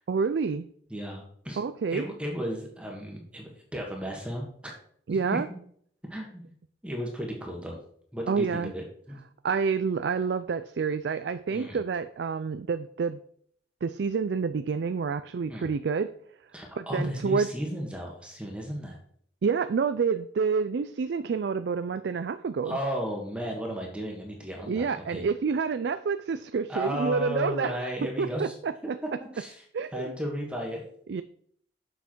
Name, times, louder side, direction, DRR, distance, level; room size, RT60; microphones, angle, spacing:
voice 1, 0.1-0.7 1.6-2.1 5.1-5.5 8.3-8.7 9.4-13.2 13.8-16.1 16.8-17.5 19.4-22.8 24.7-28.7 29.7-30.1 31.1-31.2, right 5 dB, 65° right, 12 dB, 0.4 m, -28 dB
voice 2, 0.9-1.6 1.9-4.7 5.3-5.4 6.1-6.4 6.8-7.8 8.1-9.2 11.5-11.8 15.5-15.7 16.5-19.0 22.6-25.2 26.7-28.5 29.3-29.6 29.9-30.8, equal, 5° right, 0 dB, 1.5 m, -34 dB
7.5 x 5.6 x 4.5 m, 0.62 s
head